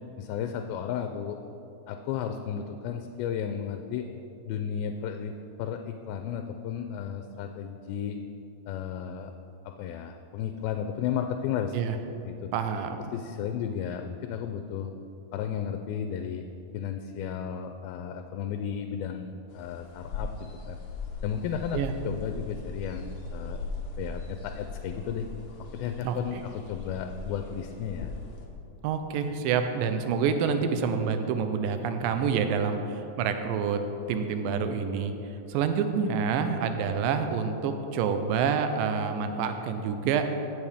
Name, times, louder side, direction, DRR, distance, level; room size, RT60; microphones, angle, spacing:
voice 1, 0.2-1.4 1.9-4.1 4.5-5.3 5.6-8.2 8.7-9.3 9.8-11.8 12.2-12.3 13.1-14.9 15.3-16.5 16.7-20.8 21.2-21.8 22.0-23.6 24.0-25.3 25.7-26.4 26.7-28.1, left 8 dB, 85° left, 6 dB, 2.3 m, -33 dB
voice 2, 12.5-13.1 21.7-21.9 26.0-26.4 28.8-33.8 34.1-35.1 35.5-40.3, right 6 dB, 80° right, 7 dB, 2.2 m, -27 dB
sound 1, 19.5-28.5, left 3 dB, 65° left, 1.6 m, -39 dB
16.5 x 7.3 x 3.5 m, 3.0 s
omnidirectional pair, 4.2 m